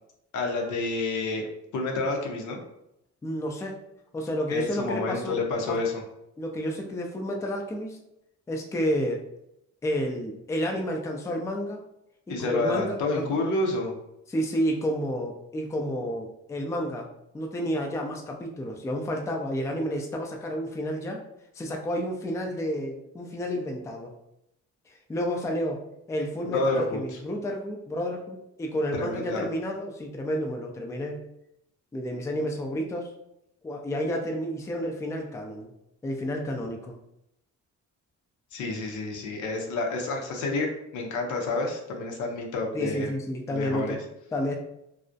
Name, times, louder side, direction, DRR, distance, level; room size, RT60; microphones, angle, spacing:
voice 1, 0.3-1.5 1.7-2.6 4.5-6.0 12.3-13.9 26.5-27.0 29.0-29.5 38.5-40.7 40.9-43.1 43.5-44.0, left 2 dB, 75° left, 1 dB, 0.6 m, -29 dB
voice 2, 3.2-3.8 4.1-5.4 5.7-5.8 6.4-8.0 8.5-9.2 9.8-11.8 12.3-13.4 14.3-17.1 17.3-21.2 21.5-24.1 24.9-31.3 31.9-33.1 33.6-35.7 36.0-36.9 42.7-44.0 44.3-44.6, equal, 10° left, 2 dB, 0.3 m, -30 dB
2.3 x 2.0 x 2.6 m, 0.81 s
cardioid pair, 90°, 30 cm